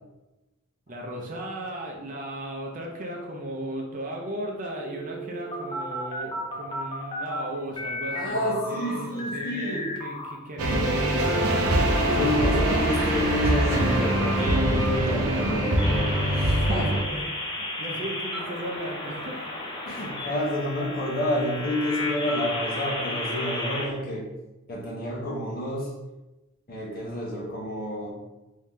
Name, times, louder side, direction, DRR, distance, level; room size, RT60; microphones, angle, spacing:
voice 1, 0.9-11.4 16.5-19.5, right 1 dB, 40° right, 0 dB, 0.5 m, -36 dB
sound 1, 4.8-7.4 7.7-10.3 10.7-23.9, left 1 dB, 20° left, 0.5 m, -34 dB
voice 2, 8.1-9.9 12.0-16.9 19.9-24.3 24.7-25.9 26.7-28.1, equal, 45° left, -4 dB, 0.9 m, -29 dB
sound 2, 10.6-17.0, right 1 dB, 90° right, 0.6 m, -23 dB
3.1 x 2.7 x 3.6 m, 1.0 s
head